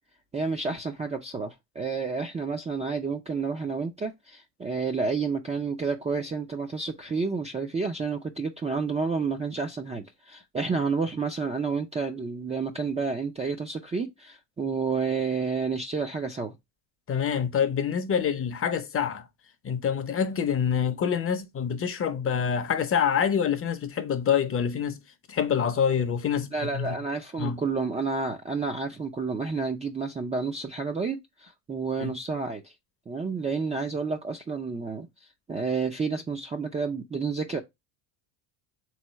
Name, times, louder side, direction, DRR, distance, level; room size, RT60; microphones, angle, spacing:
voice 1, 0.3-16.5 26.5-32.7 33.1-35.1 35.5-37.6, right 4 dB, 15° right, 0.4 m, -30 dB
voice 2, 17.1-19.3 19.6-25.0 25.3-27.0 27.4-27.6 32.0-32.1, left 7 dB, 25° left, 0.6 m, -26 dB
3.6 x 3.2 x 4.4 m
supercardioid pair, 100°, 49 cm